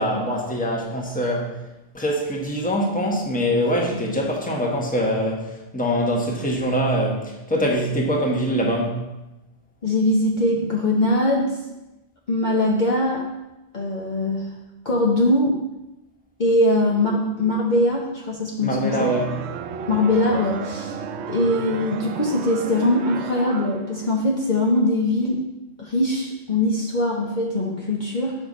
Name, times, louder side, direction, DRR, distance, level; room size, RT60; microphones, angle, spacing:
voice 1, 0.0-1.5 1.9-9.0 18.6-19.3, equal, 10° left, -2 dB, 1.1 m, -23 dB
voice 2, 9.8-11.5 12.3-13.2 13.7-14.5 14.8-15.5 16.4-19.1 19.9-21.0 21.3-25.4 25.8-28.4, left 1 dB, 45° left, -3 dB, 0.9 m, -21 dB
sound 1, 18.9-24.0, right 6 dB, 75° right, 0.8 m, -33 dB
6.8 x 5.4 x 3.9 m, 0.97 s
omnidirectional pair, 1.2 m